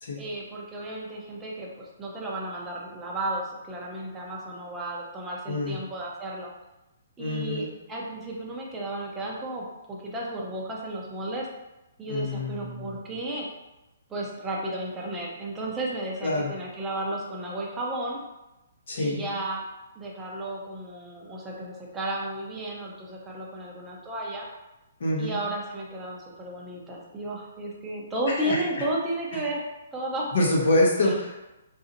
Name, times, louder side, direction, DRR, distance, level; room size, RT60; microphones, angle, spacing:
voice 1, 0.2-6.5 7.2-11.5 12.0-13.5 14.1-18.2 19.0-19.6 20.0-24.5 25.2-29.6 29.9-30.3 31.0-31.1, right 1 dB, 10° right, -4 dB, 0.6 m, -33 dB
voice 2, 5.5-5.8 7.2-7.7 12.1-13.0 16.2-16.5 18.9-19.3 25.0-25.4 28.4-28.9 29.3-29.4 30.3-31.4, left 1 dB, 60° left, -1 dB, 1.0 m, -26 dB
4.0 x 2.7 x 2.6 m, 0.98 s
hypercardioid pair, 165°, 0 cm